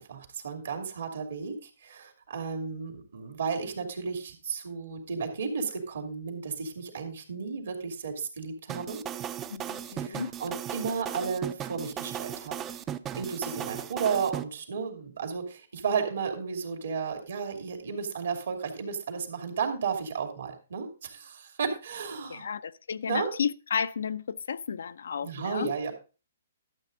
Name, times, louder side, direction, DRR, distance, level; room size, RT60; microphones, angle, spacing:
voice 1, 0.0-9.0 9.9-12.8 13.2-22.5 23.0-23.3 25.2-25.9, right 5 dB, 70° right, 2.7 m, -33 dB
sound 1, 8.7-14.4, right 10 dB, 20° right, 0.5 m, -36 dB
voice 2, 9.5-10.3 22.3-25.7, left 7 dB, 75° left, 0.5 m, -33 dB
12.0 x 7.3 x 3.9 m
hypercardioid pair, 140°, 0 cm